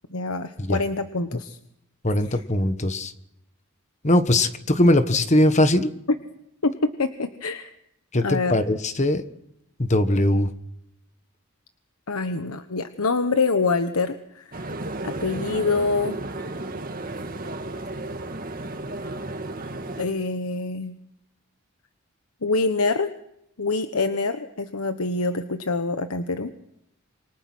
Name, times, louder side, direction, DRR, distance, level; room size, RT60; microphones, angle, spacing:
voice 1, 0.1-1.6 2.3-2.4 6.6-7.7 8.2-8.5 12.1-14.7 15.0-16.2 20.0-21.0 22.4-23.1 23.6-26.5, left 3 dB, 90° left, 9 dB, 1.2 m, -25 dB
voice 2, 2.0-3.1 4.0-5.9 8.1-9.2 9.8-10.5, left 1 dB, 35° left, 10 dB, 1.3 m, -20 dB
sound 1, 14.5-20.0, right 2 dB, 40° right, 2.0 m, -33 dB
27.0 x 25.0 x 6.2 m, 0.80 s
head